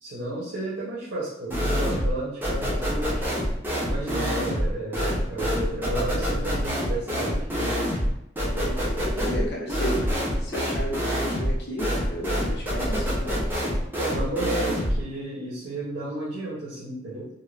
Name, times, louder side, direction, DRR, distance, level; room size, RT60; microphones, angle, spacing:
voice 1, 0.0-3.3 3.9-7.8 14.0-17.3, right 2 dB, 70° right, -7 dB, 0.7 m, -32 dB
sound 1, 1.5-2.2 2.4-15.0, equal, 10° right, 0.5 m, -26 dB
voice 2, 8.5-10.0 10.4-13.5, equal, 60° left, -2 dB, 0.7 m, -33 dB
2.4 x 2.2 x 3.1 m, 0.78 s
head